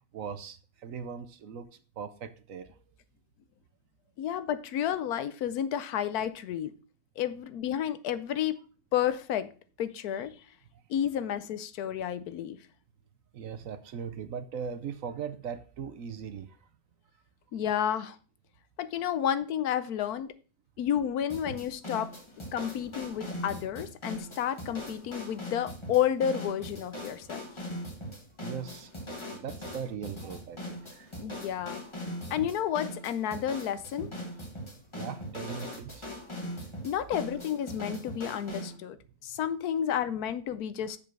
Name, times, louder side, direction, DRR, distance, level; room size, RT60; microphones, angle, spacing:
voice 1, 0.1-1.7 2.0-2.8 13.3-16.6 28.4-28.9 29.3-31.1 34.9-36.1, right 7 dB, 65° right, 11 dB, 1.1 m, -39 dB
voice 2, 4.2-6.7 7.2-8.6 8.9-9.5 9.8-10.3 10.9-12.6 17.5-18.2 18.8-20.3 20.8-22.1 22.5-27.4 31.2-31.8 32.3-34.1 36.8-39.0 39.2-41.0, left 9 dB, 80° left, 13 dB, 1.2 m, -31 dB
sound 1, 21.3-38.8, equal, 20° left, 1.5 m, -40 dB
6.9 x 5.2 x 6.0 m, 0.38 s
omnidirectional pair, 1.6 m